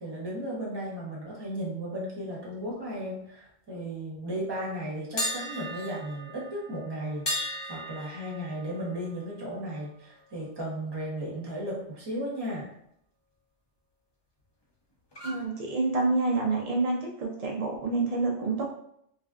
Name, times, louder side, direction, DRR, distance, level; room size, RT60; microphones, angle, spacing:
voice 1, 0.0-12.7, right 1 dB, 25° right, -4 dB, 0.8 m, -35 dB
sound 1, 5.2-11.1 11.4-11.6 15.1-15.4, left 1 dB, 35° left, 0.4 m, -37 dB
voice 2, 15.2-18.6, right 3 dB, 85° right, -1 dB, 0.3 m, -28 dB
3.1 x 2.4 x 2.3 m, 0.72 s
omnidirectional pair, 1.2 m